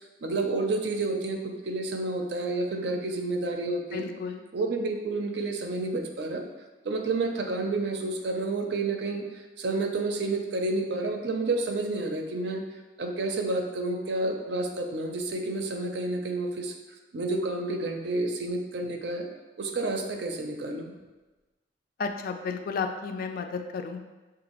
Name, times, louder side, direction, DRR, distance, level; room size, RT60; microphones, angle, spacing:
voice 1, 0.2-4.1 4.5-6.4 6.8-9.2 9.6-12.6 13.0-16.7 17.1-19.3 19.6-20.9, right 2 dB, 65° right, 4 dB, 0.5 m, -30 dB
voice 2, 3.6-4.4 22.0-24.0, left 5 dB, 55° left, 5 dB, 0.3 m, -33 dB
6.3 x 2.5 x 3.0 m, 1.2 s
head